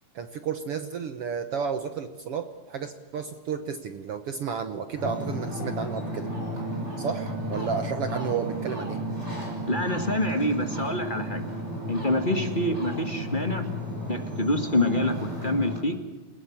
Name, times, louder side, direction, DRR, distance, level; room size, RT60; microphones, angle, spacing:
voice 1, 0.1-6.3 7.0-9.0, right 6 dB, 60° right, 8 dB, 1.6 m, -32 dB
Ocean, 4.9-15.8, equal, 20° right, 6.4 m, -33 dB
voice 2, 9.7-11.4 11.9-13.7 14.1-16.0, left 1 dB, 25° left, 6 dB, 1.0 m, -26 dB
29.0 x 17.5 x 7.2 m, 1.2 s
omnidirectional pair, 3.7 m